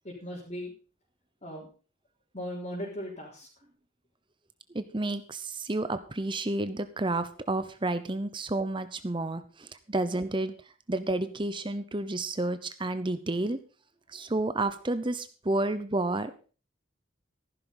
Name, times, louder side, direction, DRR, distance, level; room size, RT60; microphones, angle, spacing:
voice 1, 0.0-0.7 1.4-1.7 2.3-3.5 14.1-14.3, equal, 35° left, -4 dB, 4.1 m, -38 dB
voice 2, 4.7-13.6 14.1-16.3, right 2 dB, 25° right, 12 dB, 0.8 m, -31 dB
14.5 x 12.0 x 4.0 m, 0.37 s
head